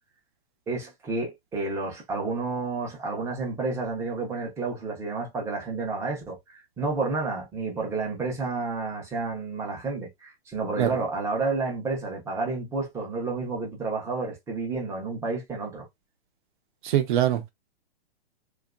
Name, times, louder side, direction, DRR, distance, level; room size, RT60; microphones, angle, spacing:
voice 1, 0.7-6.4 6.8-15.9, right 3 dB, 10° right, 0.6 m, -30 dB
voice 2, 16.8-17.5, right 11 dB, 50° right, 0.7 m, -23 dB
2.8 x 2.4 x 2.3 m
hypercardioid pair, 145°, 32 cm